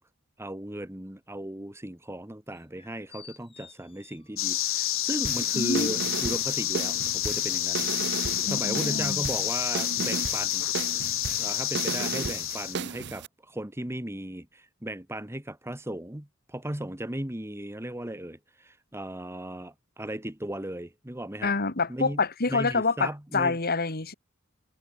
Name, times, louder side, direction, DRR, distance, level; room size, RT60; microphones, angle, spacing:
voice 1, 0.4-7.8 8.5-10.7 11.4-21.5 21.9-22.2 22.5-23.6, right 1 dB, 10° right, 1.7 m, -36 dB
sound 1, 2.5-4.4 4.7-5.7 6.3-8.9 9.4-9.5, left 6 dB, 30° left, 5.2 m, -53 dB
sound 2, 4.4-12.7, left 13 dB, 70° left, 2.0 m, -29 dB
sound 3, 5.3-13.3, right 5 dB, 55° right, 0.8 m, -35 dB
voice 2, 5.5-5.9 8.5-9.2 21.4-24.1, left 4 dB, 50° left, 2.4 m, -27 dB
head